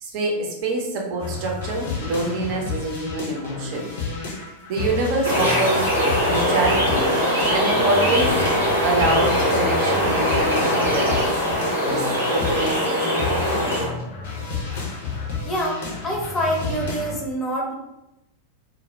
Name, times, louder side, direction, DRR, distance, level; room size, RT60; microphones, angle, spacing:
voice 1, 0.0-3.9 4.7-5.9 6.3-7.1 7.5-8.4 8.8-11.4 11.8-13.7, right 2 dB, 45° right, -1 dB, 0.6 m, -25 dB
sound 1, 1.2-17.2, left 4 dB, 55° left, 0.6 m, -31 dB
sound 2, 5.2-13.9, equal, 85° right, 0.9 m, -21 dB
voice 2, 15.4-17.7, equal, 20° left, -1 dB, 0.7 m, -26 dB
2.3 x 2.1 x 2.9 m, 0.91 s
figure-of-eight pair, 90°, 0 cm